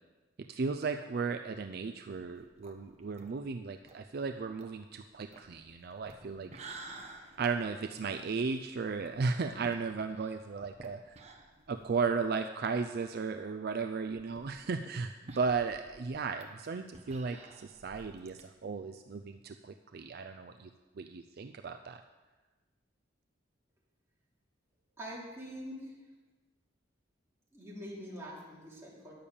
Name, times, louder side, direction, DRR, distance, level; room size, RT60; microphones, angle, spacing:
voice 1, 0.4-6.5 7.4-11.2 11.7-20.7 21.0-22.0, right 4 dB, 55° right, 7 dB, 0.4 m, -35 dB
sound 1, 2.1-12.4 12.7-12.8 13.1-13.2 13.9-18.4, right 2 dB, 35° right, 1.1 m, -53 dB
voice 2, 25.0-26.0 27.5-29.1, equal, 15° right, -6 dB, 3.3 m, -44 dB
10.0 x 6.8 x 7.1 m, 1.2 s
head